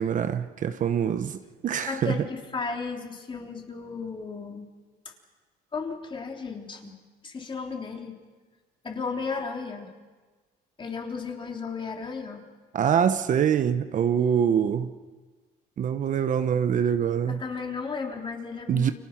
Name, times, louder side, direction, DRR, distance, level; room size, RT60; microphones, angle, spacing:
voice 1, 0.0-2.2 12.7-14.9 15.8-17.4 18.7-18.9, right 8 dB, 50° right, 1.1 m, -24 dB
voice 2, 1.9-4.7 5.0-5.1 5.7-6.9 7.2-8.2 8.8-9.9 10.8-12.4 17.3-18.9, left 4 dB, 30° left, 3.5 m, -34 dB
30.0 x 24.0 x 6.0 m
cardioid pair, 110°, 17 cm